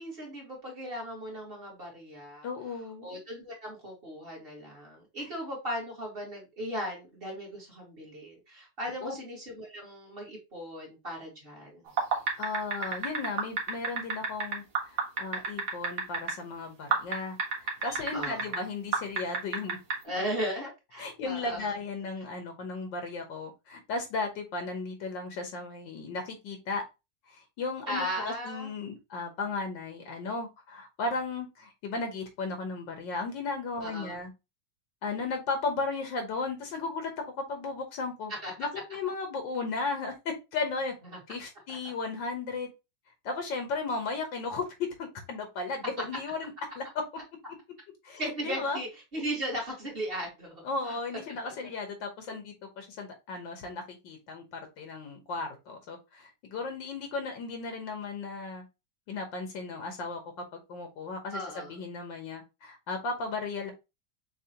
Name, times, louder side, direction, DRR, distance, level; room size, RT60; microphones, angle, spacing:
voice 1, 0.0-2.5 3.0-11.9 18.1-18.6 20.0-21.7 27.9-28.7 33.8-34.2 38.4-38.5 41.0-41.2 48.2-51.0 52.3-52.4 61.3-61.9, equal, 30° right, 2.1 m, -37 dB
voice 2, 2.4-3.1 5.2-5.3 9.0-9.2 12.4-19.8 21.0-26.8 27.3-34.3 35.0-38.3 38.6-40.9 41.3-42.7 43.2-46.5 46.8-46.9 48.0-48.8 50.6-58.6 59.1-60.2 60.7-63.7, left 3 dB, 80° left, 1.7 m, -35 dB
sound 1, 11.9-16.3 16.9-18.6 18.9-19.9, right 4 dB, 75° right, 2.0 m, -28 dB
6.6 x 2.9 x 2.8 m
omnidirectional pair, 2.0 m